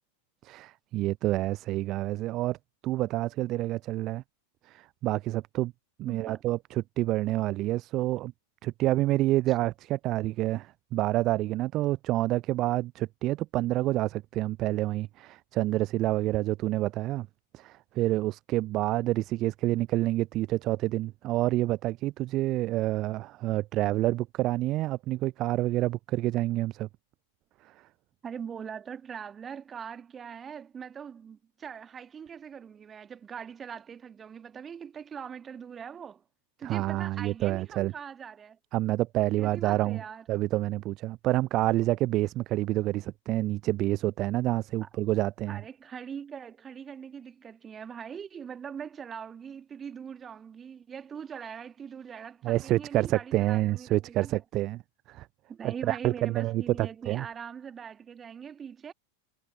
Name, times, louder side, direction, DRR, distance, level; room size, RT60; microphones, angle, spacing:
voice 1, 0.4-2.6 2.8-4.2 4.7-5.7 6.0-6.6 7.0-8.3 8.6-17.3 17.5-26.9 36.6-37.9 38.7-40.0 40.3-45.6 52.4-54.8 55.1-55.3 55.6-57.2, right 16 dB, 35° right, 0.4 m, -28 dB
voice 2, 6.1-6.4 28.2-36.2 36.6-38.6 39.4-40.3 44.8-44.9 45.5-54.4 55.5-58.9, right 7 dB, 20° right, 1.6 m, -42 dB
figure-of-eight pair, 90°, 0 cm